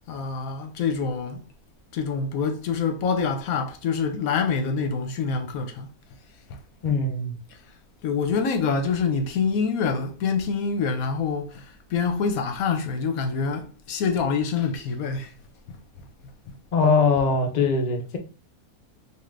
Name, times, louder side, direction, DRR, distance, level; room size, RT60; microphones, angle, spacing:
voice 1, 0.1-1.4 1.9-5.9 6.5-6.6 8.0-15.3 15.7-15.8, left 5 dB, 70° left, 1.1 m, -26 dB
voice 2, 6.8-7.3 16.7-18.2, left 4 dB, 50° left, 0.5 m, -21 dB
3.6 x 2.6 x 3.2 m
omnidirectional pair, 1.6 m